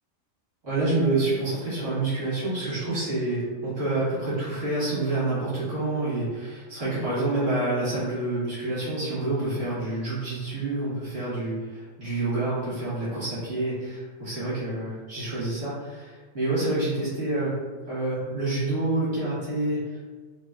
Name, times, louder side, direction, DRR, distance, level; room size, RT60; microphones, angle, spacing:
voice 1, 0.6-17.6 17.9-20.1, right 2 dB, 65° right, -11 dB, 1.9 m, -28 dB
3.9 x 2.0 x 2.4 m, 1.4 s
omnidirectional pair, 1.4 m